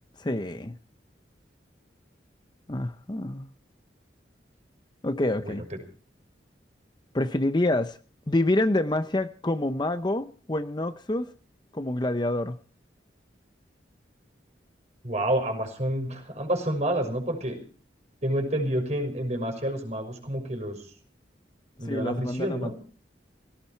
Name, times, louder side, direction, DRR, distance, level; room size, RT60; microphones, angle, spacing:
voice 1, 0.2-0.8 2.7-3.5 5.0-5.6 7.1-8.0 8.3-11.3 11.7-12.6 21.9-22.7, left 1 dB, 25° left, 0.7 m, -27 dB
voice 2, 5.4-5.8 15.0-17.6 18.2-20.9 21.8-22.8, right 1 dB, 40° right, 6.0 m, -29 dB
17.5 x 17.5 x 4.5 m
head